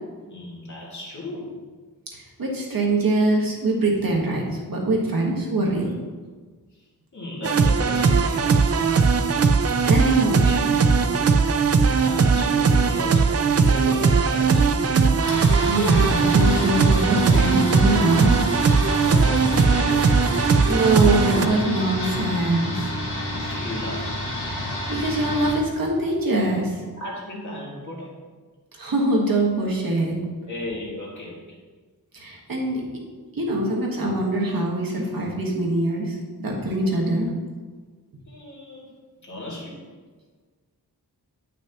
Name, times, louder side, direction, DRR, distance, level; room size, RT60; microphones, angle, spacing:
voice 1, 0.3-1.6 6.7-6.8 7.1-9.3 11.8-14.8 19.0-20.2 23.4-24.2 27.0-28.2 30.4-31.4 38.3-38.9 39.2-39.8, left 2 dB, 50° left, -5 dB, 2.4 m, -36 dB
voice 2, 2.1-5.9 9.9-10.7 15.3-18.4 20.6-22.9 24.9-26.8 28.8-30.1 32.1-32.8 33.3-37.3, right 2 dB, 65° right, -2 dB, 1.6 m, -23 dB
sound 1, 7.4-21.5, right 5 dB, 40° right, 0.4 m, -19 dB
sound 2, 15.2-25.5, left 1 dB, 85° left, 1.9 m, -29 dB
10.0 x 6.0 x 3.0 m, 1.4 s
wide cardioid pair, 140°, 38 cm